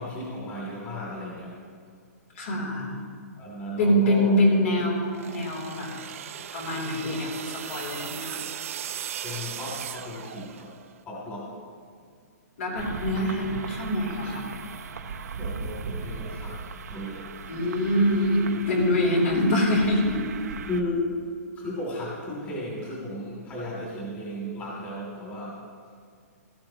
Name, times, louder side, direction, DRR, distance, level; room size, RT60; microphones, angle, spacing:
voice 1, 0.0-1.6 3.4-4.5 9.2-10.8 11.1-11.6 15.4-16.6 16.9-17.4 19.1-19.3 20.6-21.1 21.6-25.6, left 1 dB, 20° left, -5 dB, 2.7 m, -35 dB
voice 2, 2.3-2.9 3.8-5.9 6.5-8.4 12.6-14.4 17.5-20.2, left 1 dB, 55° left, -1 dB, 3.3 m, -24 dB
sound 1, 5.0-10.9, right 10 dB, 55° right, 0.6 m, -37 dB
sound 2, 12.8-20.8, right 5 dB, 75° right, 0.9 m, -38 dB
16.5 x 14.0 x 2.9 m, 2.1 s
hypercardioid pair, 160°, 9 cm